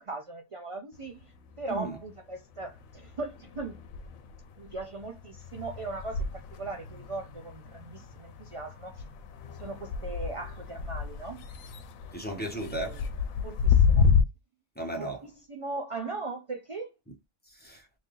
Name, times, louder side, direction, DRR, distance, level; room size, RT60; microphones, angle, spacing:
voice 1, 0.0-3.8 4.6-9.1 9.6-11.5 12.7-13.0 13.4-14.1 14.9-16.9, right 3 dB, 55° right, 0.3 m, -39 dB
sound 1, 1.0-2.2 2.5-14.2, left 6 dB, 85° left, 1.0 m, -30 dB
voice 2, 12.1-13.0 14.8-15.2 17.5-17.9, right 2 dB, 10° left, 1.0 m, -35 dB
3.2 x 2.7 x 3.7 m
omnidirectional pair, 1.4 m